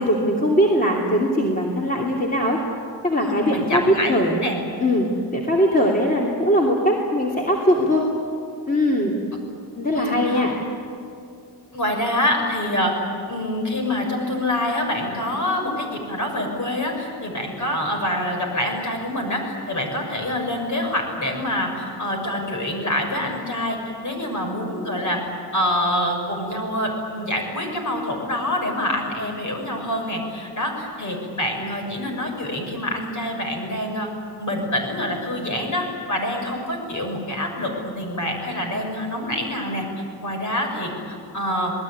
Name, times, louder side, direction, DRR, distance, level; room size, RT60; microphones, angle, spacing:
voice 1, 0.0-2.6 3.0-3.8 4.1-4.4 4.8-8.1 8.7-9.2 9.7-10.5, equal, 20° left, -2 dB, 2.8 m, -20 dB
voice 2, 3.2-4.1 4.4-4.6 9.9-10.4 11.7-13.0 13.3-34.1 34.4-39.8 40.2-41.7, left 1 dB, 45° left, 2 dB, 6.4 m, -26 dB
27.5 x 20.0 x 9.7 m, 2.6 s
wide cardioid pair, 150°, 42 cm